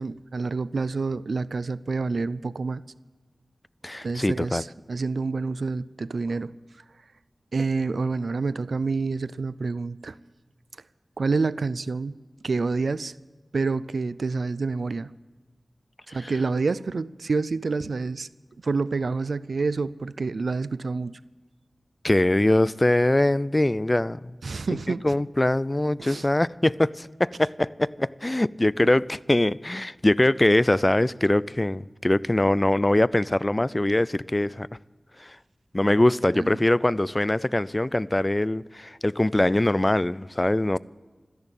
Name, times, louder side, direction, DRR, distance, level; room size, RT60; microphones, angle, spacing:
voice 1, 0.0-2.8 4.0-6.5 7.5-10.2 11.2-12.2 12.4-13.1 13.5-15.1 16.1-18.3 18.6-21.2 24.4-25.1 26.0-26.2 36.3-36.7, right 4 dB, 90° right, 0.4 m, -28 dB
voice 2, 3.8-4.6 16.1-16.3 22.0-24.4 24.7-24.8 25.0-34.7 35.2-35.4 35.7-40.8, left 1 dB, 30° left, 0.4 m, -22 dB
14.0 x 10.5 x 8.9 m
wide cardioid pair, 55°, 0 cm